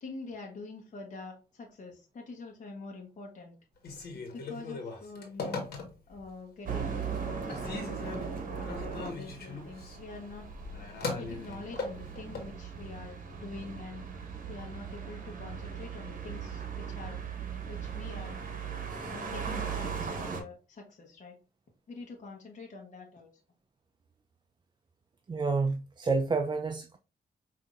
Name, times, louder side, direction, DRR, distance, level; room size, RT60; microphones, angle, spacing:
voice 1, 0.0-3.6 4.1-5.6 6.1-10.5 11.0-14.0 14.5-17.2 17.6-18.4 19.0-21.4 21.9-23.3, left 3 dB, 50° left, 1.0 m, -45 dB
Telephone, 3.8-6.2 6.7-7.2 7.5-12.5, left 3 dB, 75° left, 1.3 m, -39 dB
sound 1, 6.7-20.4, right 6 dB, 55° right, 1.1 m, -38 dB
voice 2, 25.3-27.0, right 4 dB, 25° right, 0.4 m, -29 dB
5.4 x 2.7 x 2.4 m
cardioid pair, 75°, 16 cm